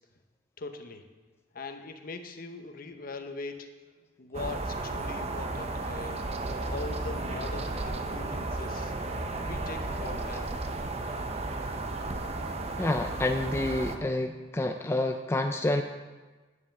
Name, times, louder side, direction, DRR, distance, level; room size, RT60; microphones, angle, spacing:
voice 1, 0.6-1.0 1.5-3.8 4.2-6.3 6.7-8.9 9.4-10.5, left 3 dB, 50° left, 6 dB, 0.8 m, -41 dB
sound 1, 4.3-14.0, right 2 dB, 35° right, 0.7 m, -34 dB
voice 2, 12.8-15.8, left 2 dB, 15° left, 4 dB, 0.4 m, -28 dB
9.6 x 5.5 x 7.5 m, 1.3 s
head